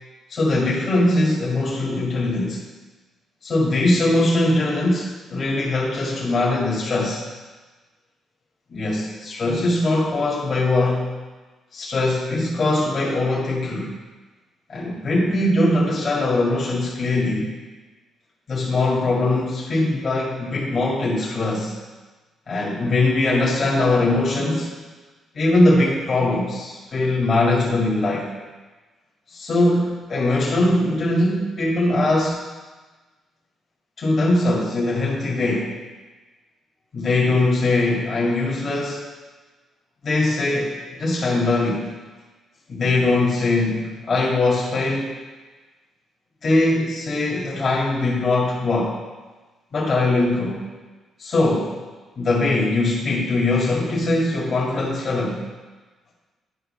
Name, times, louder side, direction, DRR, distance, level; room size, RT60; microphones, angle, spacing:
voice 1, 0.3-2.6 3.4-7.2 8.7-11.1 11.7-14.0 14.7-17.5 18.5-21.7 22.5-24.7 25.3-28.3 29.3-32.4 34.0-35.7 36.9-39.0 40.0-41.9 42.7-45.1 46.4-49.0 49.7-50.7 51.2-51.8 52.2-55.4, left 2 dB, 45° left, -6 dB, 2.0 m, -21 dB
10.5 x 4.9 x 3.3 m, 1.3 s
cardioid pair, 90°, 0 cm